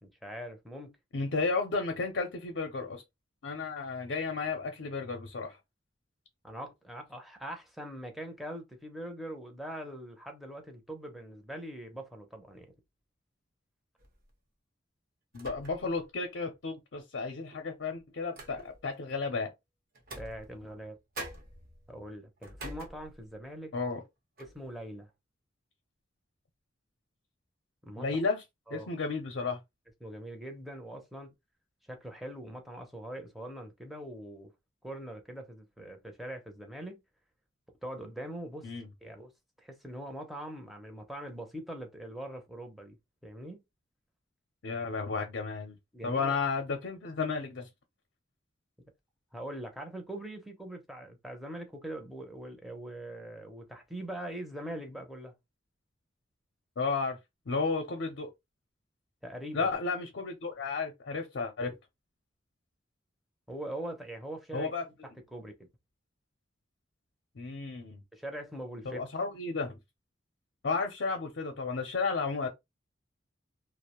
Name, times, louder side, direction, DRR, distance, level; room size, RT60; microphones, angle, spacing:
voice 1, 0.0-0.9 6.4-12.7 20.2-21.0 21.9-23.7 24.5-25.1 27.8-28.1 28.7-28.9 30.0-31.3 31.9-34.5 34.8-37.0 37.8-38.7 39.0-39.3 39.6-43.6 45.9-46.4 49.3-55.3 59.2-59.7 63.5-64.7 65.3-65.5 68.1-69.0, right 1 dB, ahead, 0.6 m, -42 dB
voice 2, 1.1-3.0 3.4-5.6 15.3-19.5 23.7-24.0 28.0-28.4 28.7-29.6 38.6-38.9 44.6-45.7 46.0-47.7 56.8-57.2 57.5-58.3 59.5-61.7 64.5-65.1 67.3-68.0 68.8-69.8 70.6-72.5, left 4 dB, 65° left, 0.6 m, -33 dB
sound 1, 14.0-14.3 15.3-16.0 16.4-16.5 17.5-18.9 19.9-20.9 21.1-23.5 23.9-24.1 24.4-24.7, right 1 dB, 50° right, 0.8 m, -46 dB
2.5 x 2.0 x 2.9 m
head